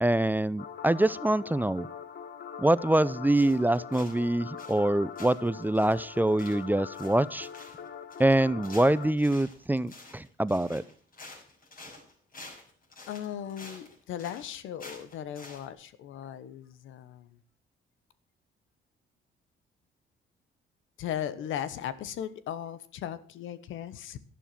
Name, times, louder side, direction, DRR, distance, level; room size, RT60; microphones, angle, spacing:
voice 1, 0.0-1.9 2.6-7.5 8.2-10.8, right 1 dB, 10° right, 18 dB, 0.5 m, -25 dB
sound 1, 0.6-9.1, left 7 dB, 60° left, 1.5 m, -43 dB
sound 2, 3.3-4.3 4.6-4.9 5.2-15.7, left 2 dB, 45° left, 6.4 m, -49 dB
voice 2, 13.1-17.4 21.0-24.2, left 10 dB, 85° left, 15 dB, 1.2 m, -37 dB
12.5 x 11.5 x 5.9 m, 0.43 s
cardioid pair, 90°, 20 cm